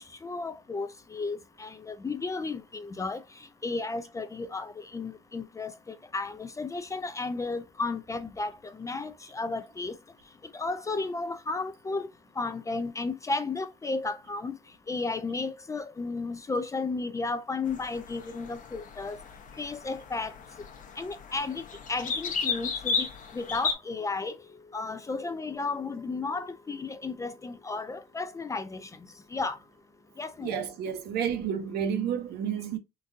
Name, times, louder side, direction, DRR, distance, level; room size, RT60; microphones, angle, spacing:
voice 1, 0.0-3.2 3.6-10.0 10.5-12.1 12.4-14.6 14.9-19.2 19.6-20.4 21.0-23.1 23.3-24.4 24.7-28.9 29.3-29.6 30.2-30.6, left 3 dB, 20° left, 0.4 m, -33 dB
sound 1, 17.7-23.7, left 5 dB, 50° left, 0.8 m, -34 dB
voice 2, 30.4-32.8, right 8 dB, 70° right, 0.8 m, -30 dB
3.9 x 2.4 x 2.5 m
cardioid pair, 110°, 17 cm